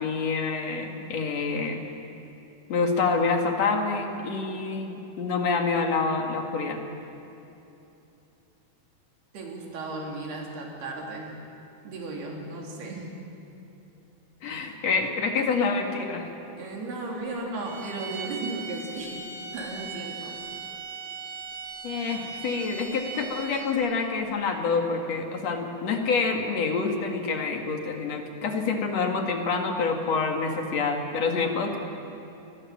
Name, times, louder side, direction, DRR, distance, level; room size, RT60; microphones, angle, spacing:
voice 1, 0.0-1.9 2.7-6.8 14.4-16.3 21.8-31.8, left 4 dB, 50° left, 3 dB, 2.8 m, -27 dB
voice 2, 9.3-11.4 11.8-13.2 16.6-19.2 19.5-20.4, right 2 dB, 85° right, 0 dB, 5.4 m, -35 dB
sound 1, 17.6-23.9, right 5 dB, 60° right, 4.5 m, -39 dB
29.0 x 21.5 x 7.6 m, 2.9 s
omnidirectional pair, 4.4 m